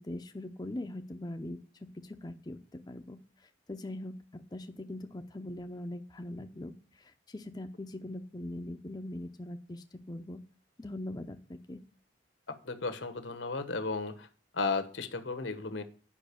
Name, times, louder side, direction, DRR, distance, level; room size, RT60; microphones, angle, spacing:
voice 1, 0.0-10.4 10.8-11.8, left 1 dB, 20° left, 6 dB, 0.5 m, -42 dB
voice 2, 12.5-14.3 14.5-15.8, left 3 dB, 80° left, 9 dB, 1.2 m, -34 dB
10.0 x 5.4 x 6.8 m, 0.41 s
head